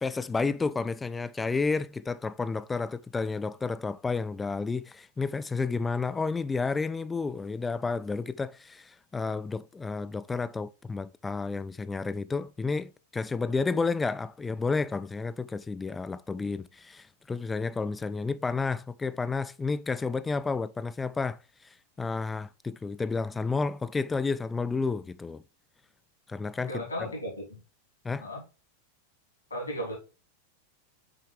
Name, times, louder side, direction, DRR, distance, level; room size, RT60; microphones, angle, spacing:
voice 1, 0.0-21.4 22.0-25.4 26.3-26.8 28.0-28.3, left 4 dB, 15° left, 0.3 m, -31 dB
voice 2, 26.7-27.6 28.2-28.4 29.5-30.0, equal, 80° left, 3.1 m, -35 dB
7.2 x 4.6 x 3.3 m
figure-of-eight pair, 90°, 0 cm